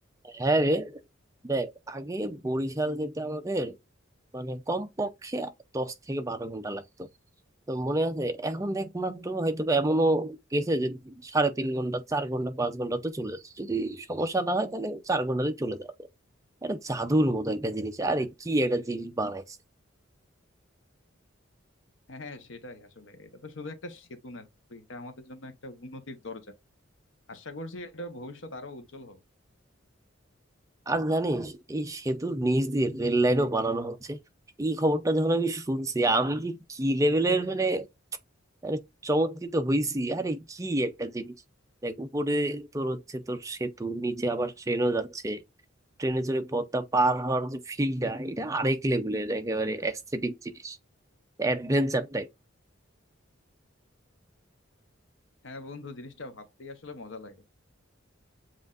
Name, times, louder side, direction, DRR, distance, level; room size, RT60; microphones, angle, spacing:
voice 1, 0.2-0.9 1.4-3.7 4.3-7.1 7.7-15.9 16.6-19.6 30.9-34.2 34.6-37.9 38.6-41.3 41.8-45.4 46.0-50.8 51.4-52.3, right 1 dB, 15° right, 0.5 m, -28 dB
voice 2, 22.1-26.5 27.3-29.2 55.4-57.6, left 2 dB, 65° left, 0.9 m, -42 dB
7.5 x 2.5 x 2.4 m
head